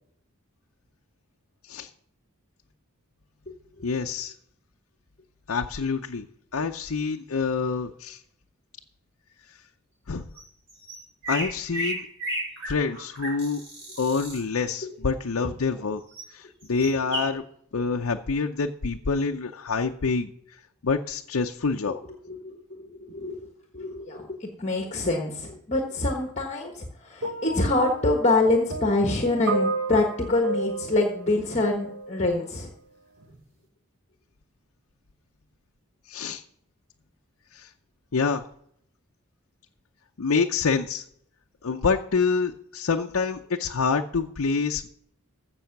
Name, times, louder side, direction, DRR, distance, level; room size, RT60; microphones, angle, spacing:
voice 1, 3.8-4.3 5.5-6.3 6.5-8.2 10.1-10.3 11.3-12.1 12.7-13.6 14.0-16.0 16.3-17.4 17.7-20.3 20.8-22.0 36.1-36.4 37.5-37.7 38.1-38.4 40.2-41.0 41.6-44.9, left 4 dB, 70° left, 3 dB, 0.6 m, -26 dB
sound 1, 10.4-10.5 10.7-14.4 16.1-16.3 16.6-17.3, right 1 dB, 55° right, 5.5 m, -33 dB
voice 2, 22.3-23.5 23.7-32.7, left 2 dB, 30° left, 3 dB, 1.3 m, -25 dB
sound 2, 27.2-32.3 33.2-33.4, right 2 dB, 85° right, 1.3 m, -33 dB
15.5 x 6.2 x 5.9 m, 0.71 s
head